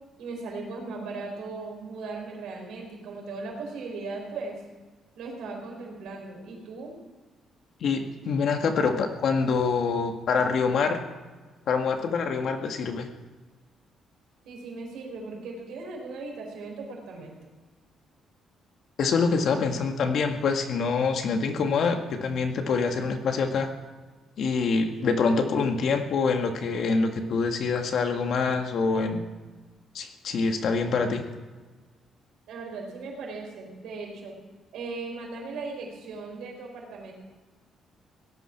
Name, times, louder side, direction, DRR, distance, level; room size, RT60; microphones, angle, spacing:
voice 1, 0.2-4.6 5.2-6.9 14.4-17.4 32.5-34.3 34.7-37.1, right 3 dB, 85° right, 0 dB, 4.2 m, -38 dB
voice 2, 7.8-11.0 11.7-13.1 19.0-23.7 24.4-29.2 29.9-31.2, left 4 dB, 55° left, 4 dB, 1.8 m, -25 dB
17.5 x 12.0 x 6.0 m, 1.3 s
cardioid pair, 160°, 0 cm